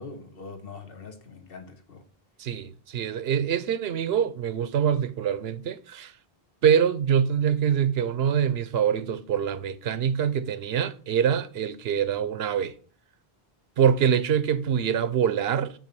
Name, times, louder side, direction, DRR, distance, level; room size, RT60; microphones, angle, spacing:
voice 1, 0.0-2.0, left 4 dB, 65° left, 1.4 m, -42 dB
voice 2, 2.4-6.1 6.6-12.7 13.8-15.7, right 8 dB, 80° right, 0.9 m, -24 dB
8.9 x 3.6 x 6.7 m
omnidirectional pair, 1.0 m